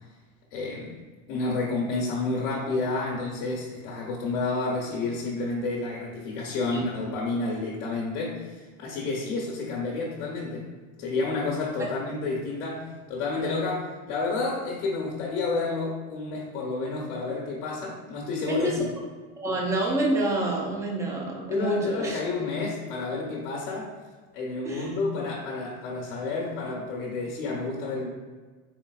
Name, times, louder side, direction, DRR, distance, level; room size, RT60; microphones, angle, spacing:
voice 1, 0.5-1.0 1.3-10.7 11.0-18.9 21.5-23.9 24.3-28.1, left 3 dB, 85° left, -3 dB, 1.0 m, -30 dB
voice 2, 18.5-18.8 19.4-22.2 24.6-25.0, right 1 dB, 5° right, -2 dB, 0.5 m, -27 dB
3.9 x 3.8 x 2.3 m, 1.4 s
supercardioid pair, 130°, 44 cm